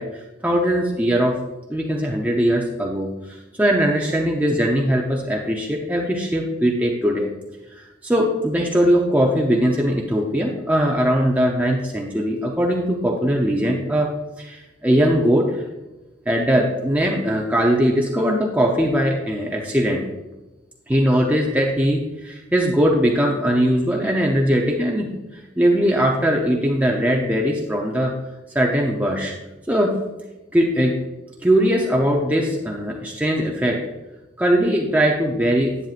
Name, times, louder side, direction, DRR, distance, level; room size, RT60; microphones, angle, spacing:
voice 1, 0.0-1.4 1.7-7.3 8.0-15.6 16.3-20.0 20.9-28.1 28.5-29.3 29.7-30.0 30.5-30.9 31.4-33.9 34.4-35.8, equal, 10° right, -1 dB, 0.6 m, -20 dB
10.5 x 9.2 x 2.5 m, 1.1 s
head